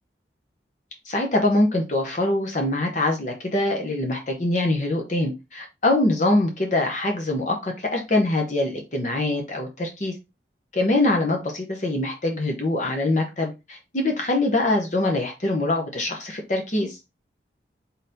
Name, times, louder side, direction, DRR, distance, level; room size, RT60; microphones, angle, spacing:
voice 1, 1.1-10.1 10.7-17.0, left 2 dB, 40° left, 2 dB, 0.9 m, -24 dB
3.9 x 3.9 x 2.7 m, 0.25 s
head